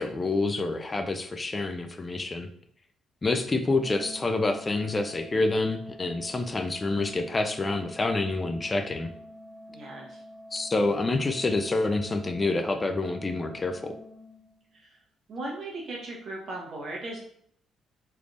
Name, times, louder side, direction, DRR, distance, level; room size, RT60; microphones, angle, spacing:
voice 1, 0.0-2.5 3.2-9.1 10.5-14.0, left 2 dB, 25° left, 7 dB, 0.4 m, -27 dB
Organ, 3.7-14.8, left 1 dB, 35° right, 0.9 m, -47 dB
voice 2, 9.7-10.2 14.7-15.0 15.3-17.2, right 2 dB, 60° right, -2 dB, 1.2 m, -37 dB
3.3 x 3.2 x 2.5 m, 0.62 s
cardioid pair, 90°, 0 cm